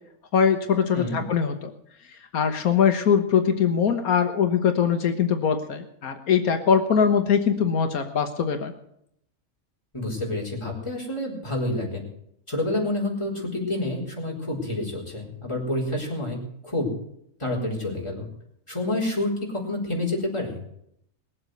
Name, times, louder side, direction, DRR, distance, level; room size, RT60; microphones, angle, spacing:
voice 1, 0.3-1.7 2.3-8.7, left 7 dB, 85° left, 6 dB, 1.6 m, -22 dB
voice 2, 9.9-12.0 12.5-16.9 17.4-18.3 18.7-20.6, left 1 dB, 20° left, -2 dB, 4.4 m, -28 dB
20.0 x 7.9 x 7.9 m, 0.73 s
omnidirectional pair, 1.5 m